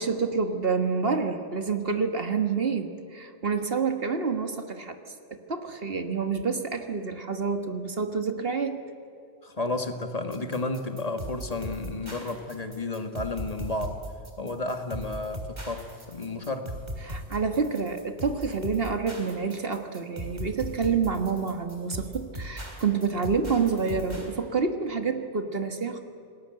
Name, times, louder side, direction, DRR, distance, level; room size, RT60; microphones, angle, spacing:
voice 1, 0.0-5.0 5.3-8.8 17.0-26.0, right 5 dB, 55° right, 7 dB, 1.7 m, -28 dB
voice 2, 9.4-14.0 14.4-16.7, left 2 dB, 30° left, 6 dB, 1.9 m, -32 dB
sound 1, 10.3-24.3, equal, 35° right, 3.8 m, -38 dB
28.0 x 20.0 x 7.7 m, 2.5 s
omnidirectional pair, 1.2 m